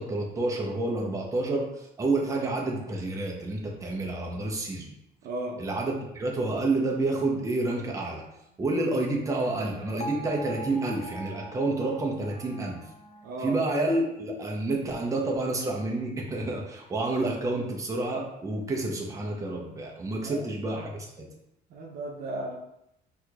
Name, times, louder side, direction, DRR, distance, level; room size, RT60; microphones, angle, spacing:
voice 1, 0.0-4.9 5.6-8.2 8.6-12.8 13.4-21.3, right 2 dB, 20° right, -1 dB, 0.7 m, -29 dB
voice 2, 5.2-5.6 13.2-13.6 20.1-20.5 21.7-22.6, right 1 dB, 65° right, 0 dB, 0.7 m, -35 dB
Wind instrument woodwind instrument, 8.4-14.2, left 2 dB, 30° left, 1.5 m, -52 dB
Bell, 10.0-14.1, right 2 dB, 45° left, 0.4 m, -42 dB
4.2 x 2.9 x 2.4 m, 0.81 s
cardioid pair, 110°, 17 cm